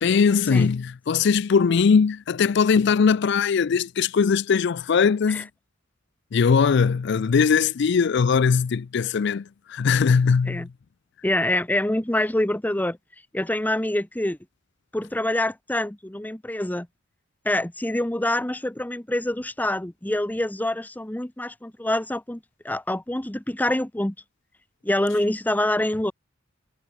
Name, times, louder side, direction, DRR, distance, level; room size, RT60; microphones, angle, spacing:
voice 1, 0.0-5.5 6.3-10.7, left 6 dB, 65° left, 0.4 m, -20 dB
voice 2, 11.2-13.0 13.3-14.4 14.9-16.9 17.4-24.1 24.8-26.1, left 1 dB, 10° left, 0.8 m, -26 dB
head